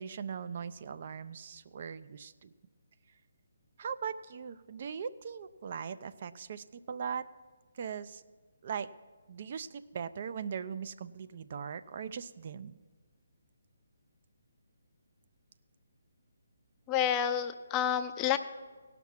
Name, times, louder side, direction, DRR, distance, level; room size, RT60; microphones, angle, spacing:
voice 1, 0.0-2.5 3.8-7.3 7.7-8.2 8.6-8.9 9.3-12.8, right 7 dB, 45° right, 13 dB, 0.4 m, -40 dB
voice 2, 16.9-18.4, left 9 dB, 20° left, 8 dB, 0.5 m, -29 dB
17.0 x 5.9 x 5.8 m, 1.4 s
figure-of-eight pair, 150°, 0 cm